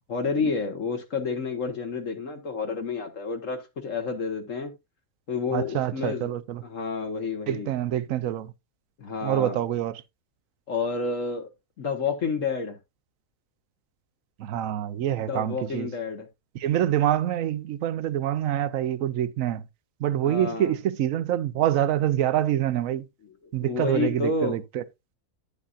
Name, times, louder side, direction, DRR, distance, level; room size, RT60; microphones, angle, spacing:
voice 1, 0.1-4.7 5.3-6.3 6.6-7.7 9.0-9.6 10.7-11.5 11.8-12.8 15.1-16.3 20.2-20.7 23.6-24.6, left 4 dB, 65° left, 1.7 m, -29 dB
voice 2, 5.5-6.6 7.5-8.5 9.2-10.0 14.4-15.9 16.5-19.6 20.0-23.1 23.5-24.8, right 11 dB, 70° right, 1.1 m, -26 dB
10.0 x 8.3 x 2.5 m
omnidirectional pair, 1.5 m